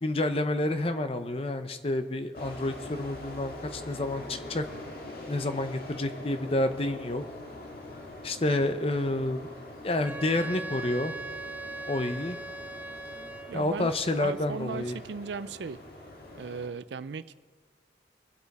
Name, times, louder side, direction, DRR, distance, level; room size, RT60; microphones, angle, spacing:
voice 1, 0.0-4.6 5.3-7.2 8.2-9.5 9.8-11.1 11.9-12.4 13.5-15.0, left 1 dB, 35° left, 9 dB, 0.7 m, -29 dB
sound 1, 2.3-16.7, left 1 dB, 60° left, 1.8 m, -44 dB
Wind instrument woodwind instrument, 10.0-13.8, right 2 dB, 10° right, 0.5 m, -39 dB
voice 2, 13.5-15.8 16.3-17.3, right 5 dB, 80° right, 15 dB, 0.5 m, -37 dB
23.0 x 8.0 x 4.2 m, 1.4 s
head